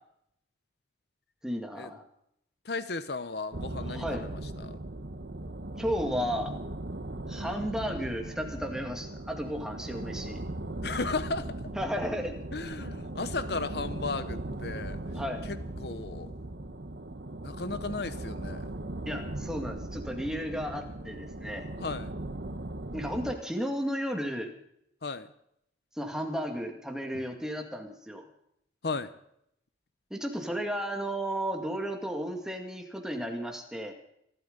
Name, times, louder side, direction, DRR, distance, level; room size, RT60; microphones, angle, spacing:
voice 1, 1.4-2.0 3.8-4.2 5.8-6.5 7.3-10.4 11.8-12.4 15.1-15.4 19.1-21.7 22.9-24.5 26.0-28.3 30.1-33.9, equal, 5° right, 3 dB, 2.2 m, -33 dB
voice 2, 2.7-4.3 4.6-4.7 10.8-11.6 12.5-15.0 15.5-16.3 17.4-18.6 21.8-22.1 25.0-25.3 28.8-29.1, left 3 dB, 60° left, 13 dB, 0.8 m, -35 dB
sound 1, 3.5-23.3, right 1 dB, 65° right, 1.2 m, -38 dB
26.5 x 12.5 x 4.0 m, 0.75 s
head